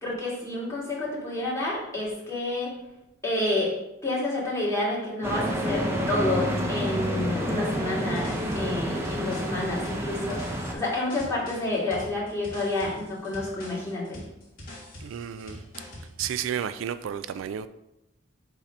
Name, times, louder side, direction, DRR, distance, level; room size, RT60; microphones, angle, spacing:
voice 1, 0.0-2.7 3.2-3.7 4.0-14.2, left 2 dB, 15° left, -7 dB, 2.0 m, -29 dB
sound 1, 5.2-10.7, equal, 15° right, 0.8 m, -29 dB
sound 2, 7.7-16.4, left 1 dB, 45° left, 2.4 m, -44 dB
voice 2, 15.0-15.6 16.2-17.7, right 9 dB, 75° right, 13 dB, 0.3 m, -32 dB
7.2 x 2.8 x 5.0 m, 0.90 s
head